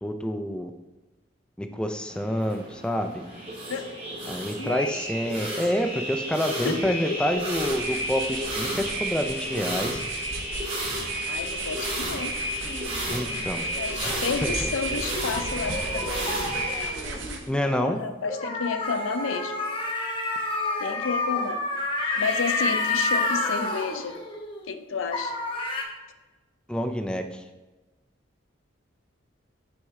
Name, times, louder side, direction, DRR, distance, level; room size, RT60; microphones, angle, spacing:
voice 1, 0.0-0.7 1.6-3.2 4.3-10.0 13.1-13.6 14.0-14.5 17.5-18.0 26.7-27.4, equal, 5° left, 5 dB, 0.4 m, -28 dB
sound 1, 2.1-16.9, right 1 dB, 30° right, 1.7 m, -32 dB
voice 2, 4.6-5.1 6.6-7.2 11.3-12.3 13.8-16.3 17.5-19.6 20.8-21.6 22.2-24.2 24.7-25.4, left 5 dB, 85° left, 8 dB, 0.5 m, -31 dB
sound 2, 7.2-17.6, right 3 dB, 75° right, 0.9 m, -37 dB
sound 3, 12.7-17.4 18.2-24.8 25.1-25.8, left 2 dB, 25° left, 0.8 m, -30 dB
6.2 x 4.5 x 3.7 m, 1.1 s
head